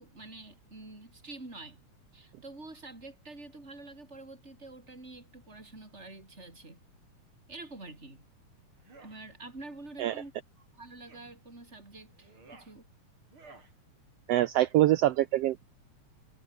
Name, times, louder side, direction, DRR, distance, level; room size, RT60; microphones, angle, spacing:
voice 1, 0.0-1.8 2.1-6.8 7.5-8.3 9.0-10.3 10.6-12.9, right 2 dB, 20° right, 6.5 m, -47 dB
sound 1, 8.8-9.2 10.0-10.3 11.1-11.3 12.1-12.7 13.3-13.7, right 3 dB, 40° right, 6.2 m, -55 dB
voice 2, 14.3-15.6, right 14 dB, 85° right, 1.4 m, -24 dB
omnidirectional pair, 3.5 m